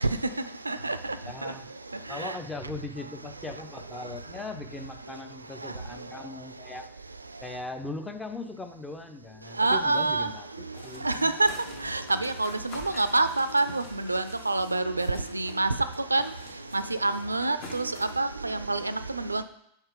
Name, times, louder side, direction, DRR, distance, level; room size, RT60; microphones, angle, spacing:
voice 1, 1.3-1.7 2.1-6.9 7.4-11.3, left 2 dB, 10° left, 6 dB, 0.7 m, -39 dB
voice 2, 9.6-10.3 11.0-11.5 11.8-15.7 16.1-16.2 16.7-17.9 18.2-18.8 19.1-19.4, right 2 dB, 80° right, 12 dB, 0.4 m, -26 dB
sound 1, 10.7-15.6 15.9-18.2, left 3 dB, 40° left, 1.5 m, -48 dB
5.7 x 4.5 x 5.1 m, 0.75 s
figure-of-eight pair, 90°, 0 cm